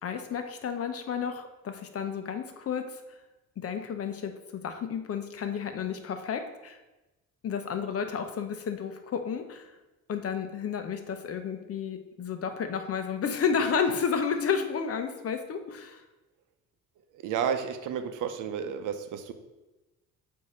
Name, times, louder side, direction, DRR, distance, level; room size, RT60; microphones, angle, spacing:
voice 1, 0.0-3.2 3.6-6.8 7.4-9.8 10.1-16.0, left 6 dB, 50° left, 7 dB, 0.8 m, -31 dB
voice 2, 17.2-19.3, right 7 dB, 85° right, 9 dB, 0.7 m, -31 dB
8.4 x 2.8 x 4.9 m, 1.1 s
cardioid pair, 90°, 30 cm